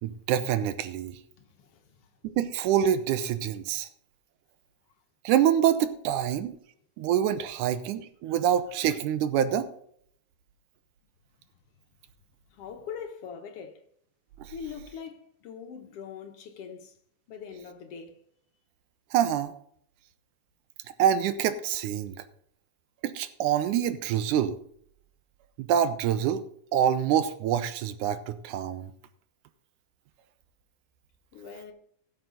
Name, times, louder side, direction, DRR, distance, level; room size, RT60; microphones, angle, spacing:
voice 1, 0.0-1.2 2.2-3.9 5.2-6.6 7.0-9.7 14.4-14.5 19.1-19.5 21.0-22.2 23.0-24.6 25.6-26.4 26.7-28.9, right 10 dB, 80° right, 2.3 m, -26 dB
voice 2, 1.4-2.1 12.5-13.8 14.5-16.9 17.3-18.2 31.3-31.7, left 7 dB, 60° left, 1.8 m, -42 dB
16.5 x 6.7 x 3.9 m
omnidirectional pair, 3.6 m